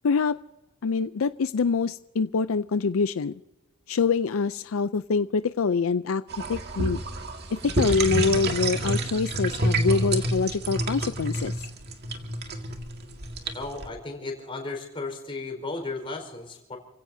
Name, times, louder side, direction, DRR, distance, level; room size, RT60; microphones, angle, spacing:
voice 1, 0.0-0.4 0.8-3.4 3.9-6.2 6.5-7.0 7.6-11.6, left 5 dB, 75° left, 13 dB, 0.5 m, -25 dB
sound 1, 6.3-13.9, right 2 dB, 50° right, 2.0 m, -28 dB
voice 2, 13.5-16.8, left 3 dB, 25° left, 3 dB, 4.5 m, -35 dB
30.0 x 16.5 x 2.7 m, 0.97 s
head